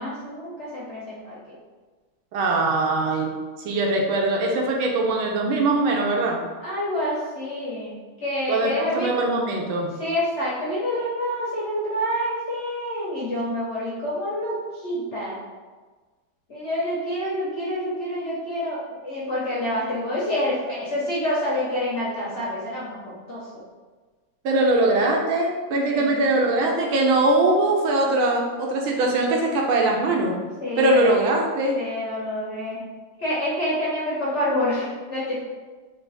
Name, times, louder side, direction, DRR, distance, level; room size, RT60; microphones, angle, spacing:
voice 1, 0.0-1.5 6.6-8.0 8.2-9.1 10.0-14.6 14.8-15.4 16.5-23.6 25.9-26.2 30.6-31.2 31.7-32.8 33.2-35.4, left 1 dB, 55° left, -7 dB, 0.8 m, -27 dB
voice 2, 2.3-3.3 3.6-6.4 8.5-9.9 24.4-30.4 30.8-31.8, right 2 dB, 80° right, 0 dB, 1.5 m, -21 dB
3.7 x 3.4 x 4.0 m, 1.4 s
omnidirectional pair, 2.3 m